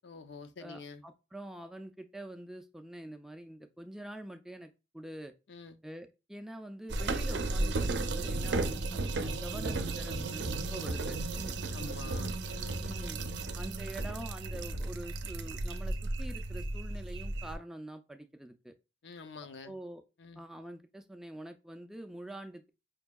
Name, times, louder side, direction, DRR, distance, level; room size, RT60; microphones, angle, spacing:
voice 1, 0.0-1.0 5.5-5.8 11.7-12.9 19.0-19.8 20.2-20.4, left 4 dB, 75° left, 0.5 m, -47 dB
voice 2, 0.6-5.3 5.8-11.5 12.8-13.2 13.6-18.7 19.6-20.0 20.4-22.7, right 1 dB, 5° right, 0.3 m, -45 dB
sound 1, 6.9-17.6, right 2 dB, 75° right, 0.5 m, -34 dB
5.2 x 2.7 x 2.2 m
head